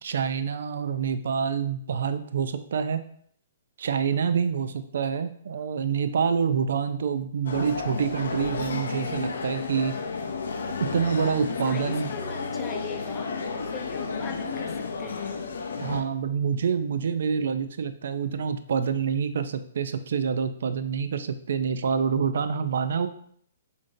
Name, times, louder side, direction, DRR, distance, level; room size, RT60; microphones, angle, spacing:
voice 1, 0.0-3.0 3.8-10.0 10.8-12.1 15.8-23.1, right 6 dB, 70° right, 10 dB, 0.3 m, -27 dB
sound 1, 7.5-16.0, left 4 dB, 80° left, 0.5 m, -32 dB
voice 2, 11.4-15.4, left 5 dB, 15° left, 4 dB, 0.4 m, -41 dB
5.0 x 2.5 x 2.6 m, 0.63 s
hypercardioid pair, 155°, 0 cm